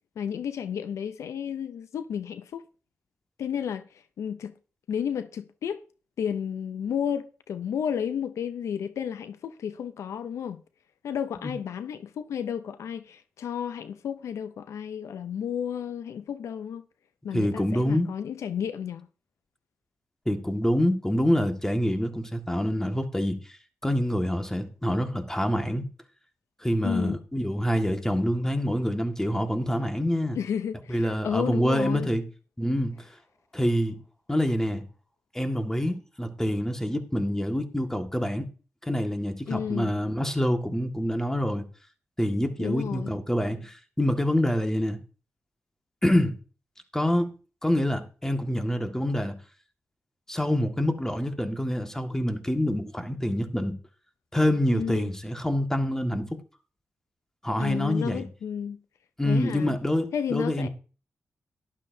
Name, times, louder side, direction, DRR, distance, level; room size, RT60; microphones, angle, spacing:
voice 1, 0.2-2.6 3.4-4.5 4.9-5.8 6.2-10.6 11.0-16.8 17.2-19.1 26.8-27.2 30.3-32.1 39.5-39.9 42.6-43.1 54.7-55.1 57.6-58.8 59.2-59.8 60.1-60.7, left 8 dB, 85° left, 0.5 m, -32 dB
voice 2, 17.3-18.1 20.3-23.4 23.8-25.8 26.6-30.4 30.9-32.2 32.6-33.1 33.5-34.0 34.3-34.8 35.3-38.5 38.8-41.6 42.2-45.0 46.0-46.4 46.9-47.3 47.6-49.4 50.3-53.8 54.3-56.4 57.4-58.3 59.2-60.7, equal, 10° left, 1.7 m, -26 dB
12.0 x 11.5 x 2.7 m
cardioid pair, 60°, 5 cm